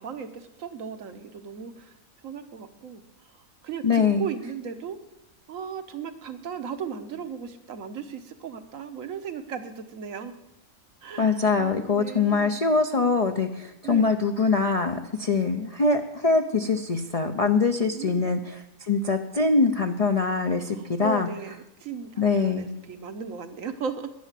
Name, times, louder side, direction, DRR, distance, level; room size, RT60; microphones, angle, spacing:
voice 1, 0.0-2.0 2.2-3.0 3.3-5.0 5.5-10.3 11.0-12.6 13.8-14.1 17.9-18.3 20.7-24.1, right 6 dB, 70° right, 9 dB, 1.5 m, -36 dB
voice 2, 3.8-4.2 11.2-18.4 18.8-21.3 22.2-22.7, left 4 dB, 35° left, 4 dB, 0.6 m, -23 dB
11.5 x 10.5 x 7.5 m, 0.86 s
omnidirectional pair, 1.4 m